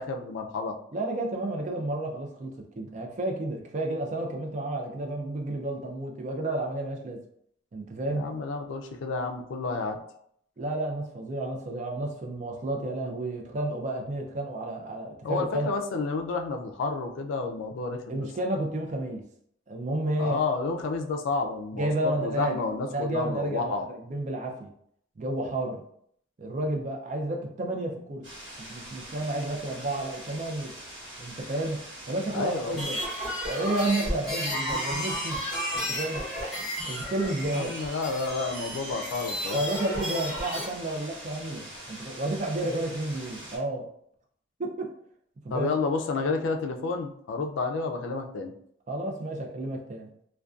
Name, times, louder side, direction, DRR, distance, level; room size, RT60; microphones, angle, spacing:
voice 1, 0.0-0.8 8.1-10.0 15.2-18.3 20.2-23.8 32.3-32.9 37.5-39.6 45.5-48.5, left 4 dB, 85° left, 5 dB, 0.3 m, -30 dB
voice 2, 0.9-2.5 2.8-7.2 7.7-8.3 10.6-15.7 18.1-19.2 19.7-20.4 21.7-22.6 22.9-24.7 25.2-25.8 26.4-28.2 28.7-30.7 31.2-33.0 33.4-35.4 35.7-36.2 36.8-37.7 39.5-43.9 44.6-44.9 45.4-45.7 48.9-50.1, right 1 dB, 40° right, 2 dB, 0.4 m, -31 dB
sound 1, 28.2-43.6, right 1 dB, 85° right, 1.0 m, -44 dB
sound 2, 32.6-40.6, equal, ahead, 0.9 m, -33 dB
2.4 x 2.2 x 2.3 m, 0.68 s
head